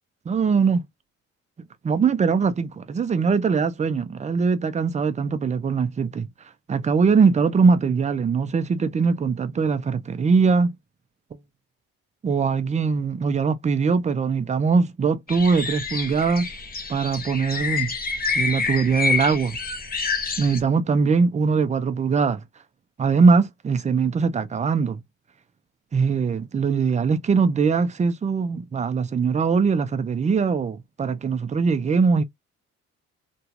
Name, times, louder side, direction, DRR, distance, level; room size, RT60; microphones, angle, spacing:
voice 1, 0.3-0.8 1.8-6.3 6.7-10.7 12.2-16.5 16.9-17.9 18.4-19.6 20.4-22.4 23.0-25.0 25.9-32.2, right 5 dB, 25° right, 0.4 m, -21 dB
sound 1, 15.3-20.6, left 4 dB, 30° left, 0.8 m, -27 dB
3.0 x 2.2 x 2.8 m
cardioid pair, 90°, 30 cm